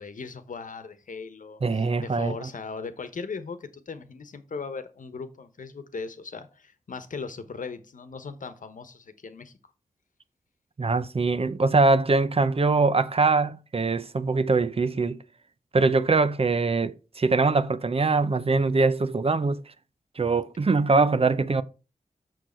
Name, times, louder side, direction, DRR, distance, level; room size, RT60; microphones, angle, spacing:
voice 1, 0.0-9.5, left 4 dB, 70° left, 1.1 m, -38 dB
voice 2, 1.6-2.5 10.8-15.2 15.7-19.6 20.2-21.6, right 3 dB, 45° right, 0.7 m, -23 dB
6.5 x 6.4 x 4.4 m
cardioid pair, 55°, 14 cm